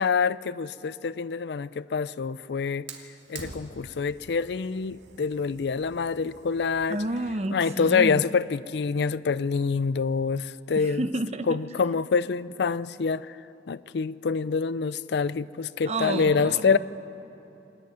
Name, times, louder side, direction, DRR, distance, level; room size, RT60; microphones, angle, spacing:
voice 1, 0.0-2.9 3.3-7.0 7.5-11.1 11.5-13.4 13.7-16.8, left 5 dB, 65° left, 0.4 m, -26 dB
Fire, 2.9-7.8, right 4 dB, 90° right, 2.4 m, -47 dB
voice 2, 6.9-8.2 10.8-11.6 15.9-16.8, right 1 dB, 35° right, 0.9 m, -30 dB
27.0 x 10.5 x 9.4 m
head